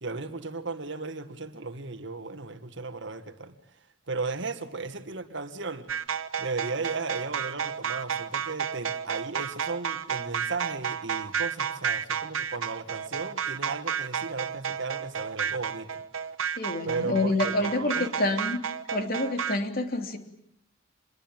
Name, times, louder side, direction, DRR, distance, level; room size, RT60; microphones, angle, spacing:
voice 1, 0.0-3.6 4.1-5.9 6.4-16.0 16.8-18.4, right 3 dB, 60° right, 1.9 m, -35 dB
sound 1, 5.9-19.6, right 7 dB, 85° right, 1.2 m, -31 dB
voice 2, 16.6-18.6 18.9-20.2, left 2 dB, 45° left, 3.2 m, -27 dB
27.0 x 22.0 x 9.1 m
head